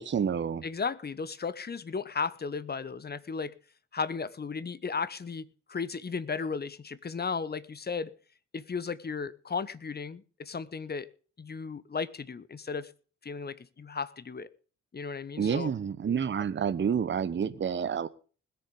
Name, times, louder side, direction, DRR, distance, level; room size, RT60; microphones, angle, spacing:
voice 1, 0.0-0.6 15.4-18.1, right 7 dB, 30° right, 1.0 m, -29 dB
voice 2, 0.6-3.6 3.9-8.1 8.5-11.1 11.4-12.9 13.2-14.5 14.9-15.7, left 5 dB, 25° left, 1.1 m, -35 dB
20.5 x 7.0 x 5.1 m
figure-of-eight pair, 40°, 35 cm